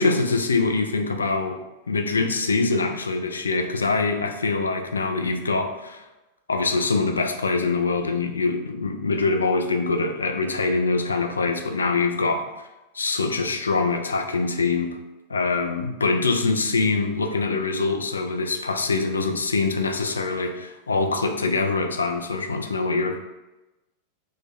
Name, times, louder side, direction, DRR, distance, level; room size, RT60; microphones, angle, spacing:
voice 1, 0.0-1.6 1.9-6.0 6.5-12.5 12.9-15.0 15.3-23.2, left 3 dB, 75° left, 6 dB, 0.3 m, -24 dB
3.0 x 2.1 x 3.8 m, 1.0 s
figure-of-eight pair, 90°, 0 cm